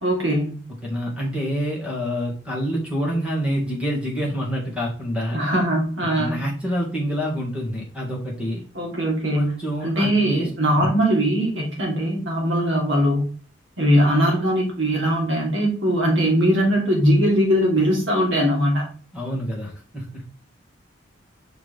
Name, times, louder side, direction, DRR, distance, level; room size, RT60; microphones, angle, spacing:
voice 1, 0.0-0.6 5.3-6.4 8.7-9.5 9.8-13.3 13.8-18.9, equal, 70° right, -1 dB, 2.8 m, -20 dB
voice 2, 0.8-5.4 6.2-8.6 9.3-10.5 10.8-10.9 19.1-20.2, equal, 5° right, -3 dB, 2.1 m, -27 dB
5.9 x 4.9 x 3.6 m, 0.40 s
head